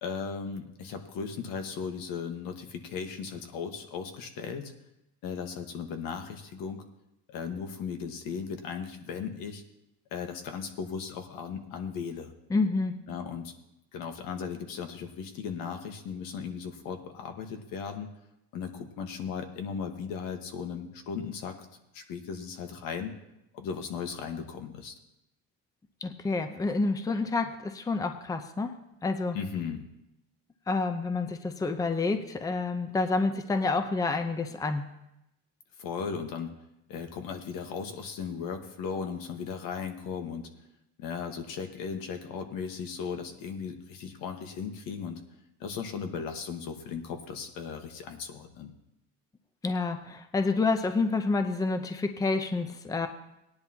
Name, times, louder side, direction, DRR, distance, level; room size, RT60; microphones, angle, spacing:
voice 1, 0.0-4.7 5.2-6.8 7.3-9.6 10.1-12.3 13.1-13.5 13.9-18.1 18.5-21.6 21.9-23.1 23.5-24.9 29.3-29.8 35.8-36.5 36.9-40.5 41.0-45.2 45.6-48.7, left 6 dB, 75° left, 5 dB, 1.5 m, -37 dB
voice 2, 12.5-12.9 26.0-28.7 29.0-29.4 30.7-34.9 49.6-53.1, left 3 dB, 10° left, 7 dB, 0.6 m, -28 dB
18.0 x 10.5 x 2.9 m, 0.87 s
cardioid pair, 120°, 34 cm